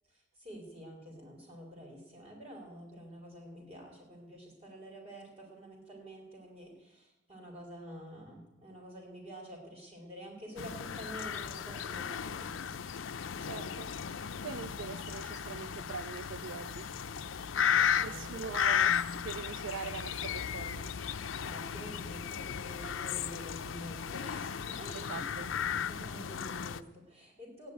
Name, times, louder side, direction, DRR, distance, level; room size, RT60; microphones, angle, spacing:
voice 1, 0.4-12.5 13.3-13.5 17.2-18.5 18.8-18.9 21.4-25.2 25.7-27.7, equal, 30° right, 4.9 m, -48 dB
sound 1, 10.6-26.8, left 8 dB, 85° left, 0.6 m, -35 dB
voice 2, 13.4-16.9 18.0-21.0 24.9-25.5, right 6 dB, 75° right, 0.4 m, -43 dB
14.0 x 10.0 x 9.1 m
head